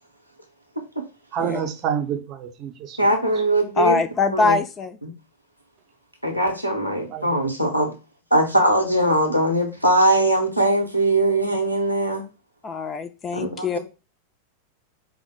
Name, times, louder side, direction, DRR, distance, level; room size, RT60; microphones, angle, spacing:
voice 1, 1.3-3.0 7.1-7.5, right 8 dB, 35° right, 0.6 m, -28 dB
voice 2, 3.0-4.0 4.3-4.6 5.0-5.1 6.2-7.9 8.3-12.2 13.3-13.8, right 1 dB, 90° left, 0.7 m, -21 dB
voice 3, 3.8-5.0 12.6-13.8, left 3 dB, 20° left, 0.4 m, -23 dB
4.3 x 2.1 x 4.3 m
figure-of-eight pair, 90°, 0 cm